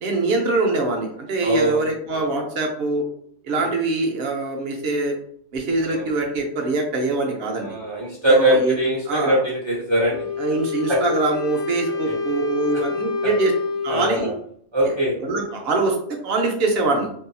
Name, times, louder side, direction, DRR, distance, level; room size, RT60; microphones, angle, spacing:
voice 1, 0.0-3.0 3.4-5.1 5.5-7.7 8.3-8.8 9.1-9.4 10.4-13.5 13.8-14.3 14.8-14.9 15.2-16.0 16.2-17.1, right 3 dB, 60° right, 2 dB, 0.8 m, -23 dB
voice 2, 1.4-2.3 3.5-3.7 5.8-6.1 7.6-10.2 10.9-11.0 12.0-12.1 13.2-13.3 13.9-14.3 14.7-15.2, right 1 dB, 40° right, -5 dB, 0.4 m, -22 dB
Wind instrument woodwind instrument, 10.0-14.4, left 4 dB, 60° left, 0.8 m, -27 dB
2.7 x 2.3 x 2.6 m, 0.66 s
omnidirectional pair, 1.2 m